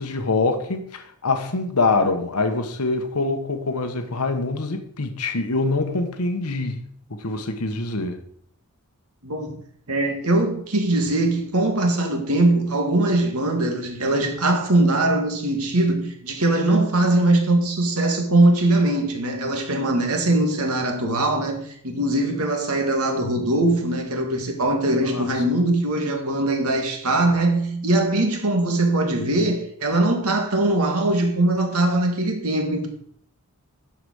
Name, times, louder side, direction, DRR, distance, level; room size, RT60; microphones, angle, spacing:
voice 1, 0.0-6.8 7.1-8.2 25.0-25.3, left 3 dB, 90° left, 1.2 m, -24 dB
voice 2, 9.2-9.6 9.9-32.9, right 2 dB, 80° right, 2.2 m, -21 dB
11.5 x 5.1 x 6.4 m
head